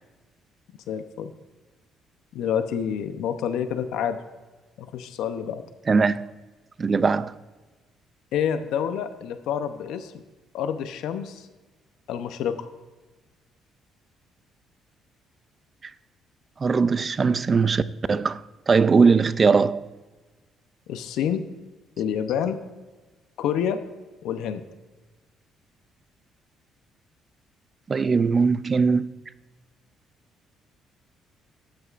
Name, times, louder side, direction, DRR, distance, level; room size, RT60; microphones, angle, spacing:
voice 1, 0.9-1.3 2.3-4.2 4.8-5.6 8.3-10.2 10.5-11.5 12.1-12.6 20.9-21.4 22.0-22.6 23.4-23.8 24.2-24.6, left 8 dB, 80° left, 0.6 m, -28 dB
voice 2, 5.9-6.3 6.8-7.4 16.6-17.8 18.1-18.4 18.7-19.8 27.9-29.1, right 5 dB, 25° right, 0.3 m, -20 dB
12.5 x 11.0 x 2.5 m
cardioid pair, 135°, 0 cm